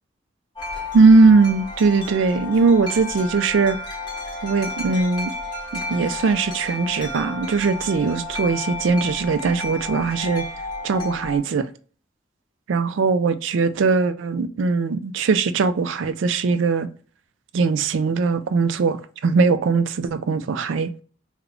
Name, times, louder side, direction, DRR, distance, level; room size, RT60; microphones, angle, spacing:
Wind chime, 0.6-11.4, left 2 dB, 25° left, 1.3 m, -32 dB
voice 1, 0.9-3.8 4.4-5.3 5.7-10.5 10.8-11.7 12.7-16.9 17.5-21.0, right 4 dB, 80° right, 0.4 m, -20 dB
3.4 x 2.2 x 3.6 m
head